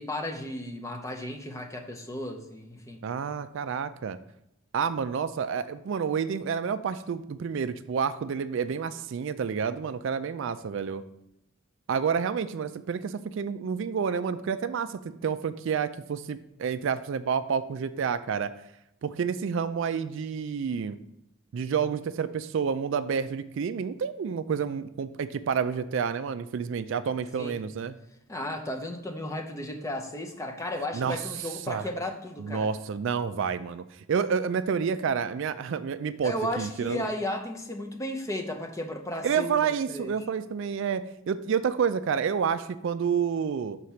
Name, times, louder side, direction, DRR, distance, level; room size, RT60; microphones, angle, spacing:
voice 1, 0.0-3.0 27.4-27.5 28.3-32.7 36.2-39.6 39.9-40.1, left 1 dB, 15° left, 3 dB, 0.6 m, -34 dB
voice 2, 3.0-4.2 4.7-11.0 11.9-18.5 19.0-21.0 21.5-28.0 30.9-31.2 31.7-31.8 32.4-37.1 39.2-43.8, right 6 dB, 60° right, 12 dB, 0.3 m, -29 dB
6.5 x 4.1 x 5.7 m, 0.82 s
head